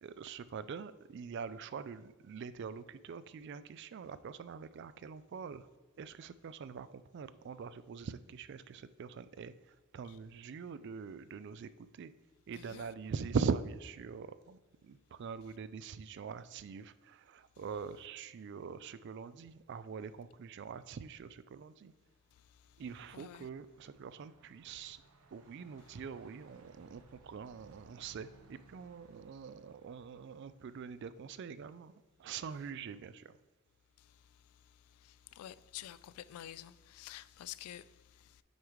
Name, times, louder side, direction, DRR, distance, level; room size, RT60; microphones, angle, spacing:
voice 1, 0.0-5.7 6.0-12.1 12.5-21.9 22.8-25.0 25.3-33.4, right 6 dB, 55° right, 0.3 m, -43 dB
voice 2, 12.5-12.9 23.1-23.5 34.0-34.1 35.0-38.4, left 12 dB, 90° left, 0.3 m, -49 dB
Truck, 22.0-31.4, right 2 dB, 75° right, 0.7 m, -64 dB
8.0 x 3.1 x 4.9 m
head